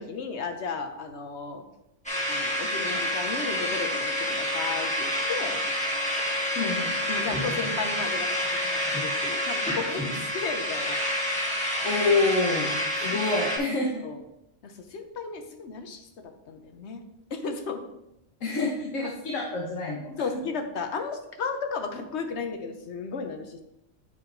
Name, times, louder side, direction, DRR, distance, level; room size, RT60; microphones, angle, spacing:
voice 1, 0.0-1.6 2.3-5.6 7.1-11.0 13.1-13.2 14.0-14.2 14.6-17.0 17.3-17.9 20.2-23.6, left 4 dB, 65° left, 6 dB, 1.1 m, -34 dB
sound 1, 2.1-13.6, equal, 5° left, 2.0 m, -28 dB
voice 2, 6.6-6.9 11.8-14.0 18.4-20.2, left 3 dB, 85° left, -2 dB, 1.4 m, -27 dB
8.6 x 5.0 x 3.9 m, 0.85 s
omnidirectional pair, 1.3 m